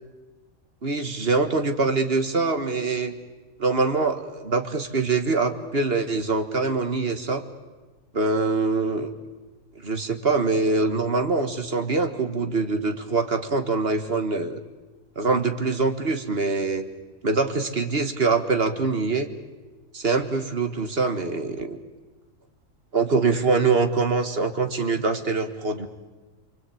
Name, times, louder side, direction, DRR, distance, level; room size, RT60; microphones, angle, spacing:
voice 1, 0.8-3.1 3.6-7.4 8.1-9.1 9.8-14.6 15.2-16.9 17.2-19.3 19.9-21.8 22.9-25.9, right 3 dB, 45° right, 7 dB, 1.9 m, -24 dB
29.0 x 23.0 x 8.6 m, 1.2 s
omnidirectional pair, 1.4 m